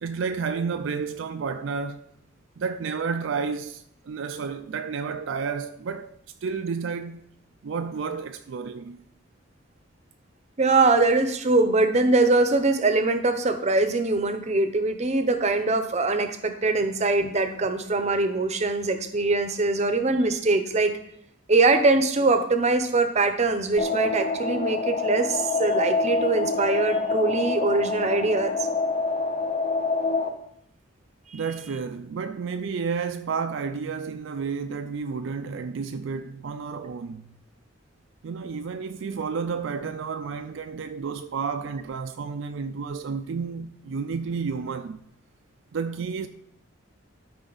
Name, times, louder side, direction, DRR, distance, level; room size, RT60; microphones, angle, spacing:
voice 1, 0.0-2.1 2.6-7.3 7.6-9.1 31.3-37.3 38.2-45.0 45.7-46.3, right 5 dB, 65° right, 0.4 m, -31 dB
voice 2, 10.6-21.0 21.5-28.7 31.3-31.4, right 3 dB, 35° right, 0.7 m, -22 dB
sound 1, 23.8-30.3, left 4 dB, 30° left, 0.7 m, -26 dB
12.5 x 5.0 x 3.9 m
head